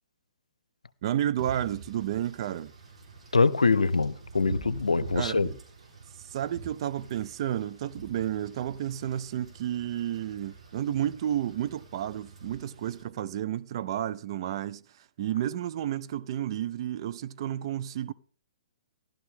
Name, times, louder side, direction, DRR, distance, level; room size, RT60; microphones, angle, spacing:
voice 1, 1.0-2.7 5.1-5.4 6.3-14.8 15.2-18.1, right 11 dB, 45° right, 0.6 m, -31 dB
Wind / Rain, 1.4-13.0, right 3 dB, 65° right, 3.9 m, -46 dB
voice 2, 3.3-5.5, left 4 dB, 80° left, 0.6 m, -24 dB
15.0 x 12.0 x 3.7 m
figure-of-eight pair, 120°, 4 cm